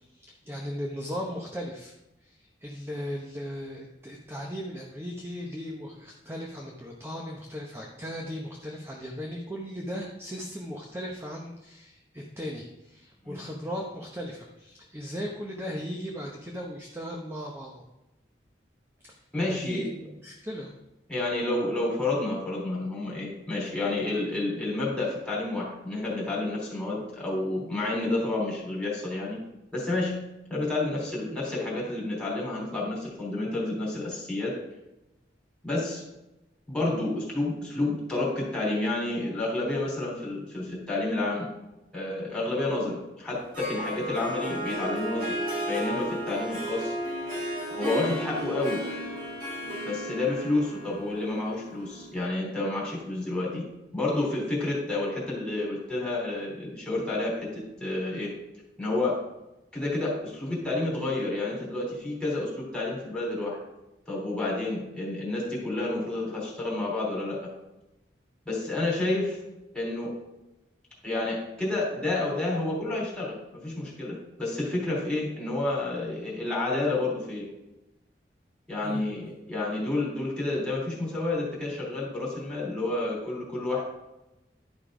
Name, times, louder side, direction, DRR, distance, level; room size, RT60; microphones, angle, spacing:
voice 1, 0.1-1.9 2.2-17.8 19.0-19.2 19.5-20.7 78.8-79.1, equal, 15° right, 0 dB, 0.9 m, -37 dB
voice 2, 19.3-19.9 21.1-29.4 29.7-30.2 30.5-34.5 35.6-36.0 36.7-41.5 41.9-45.4 45.7-46.9 47.7-48.8 49.9-53.6 53.9-57.5 57.8-58.3 58.8-59.2 59.7-63.6 64.1-67.4 68.5-69.4 69.7-70.1 71.0-77.5 78.7-83.8, left 2 dB, 5° left, -6 dB, 3.5 m, -30 dB
Harp, 43.3-52.3, right 1 dB, 50° right, 3.1 m, -34 dB
11.5 x 5.3 x 5.0 m, 0.95 s
head